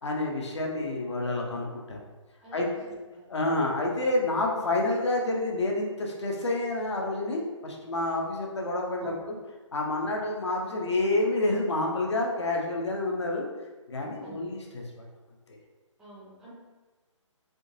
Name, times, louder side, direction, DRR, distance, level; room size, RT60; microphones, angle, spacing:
voice 1, 0.0-2.0 2.5-2.6 3.3-9.3 9.7-13.5 13.9-15.0 15.5-15.6, left 2 dB, 60° left, 0 dB, 0.8 m, -28 dB
voice 2, 2.4-3.3 9.0-9.3 14.2-14.6 16.0-16.5, right 1 dB, 5° right, -9 dB, 0.5 m, -48 dB
3.7 x 2.7 x 2.6 m, 1.2 s
figure-of-eight pair, 140°, 16 cm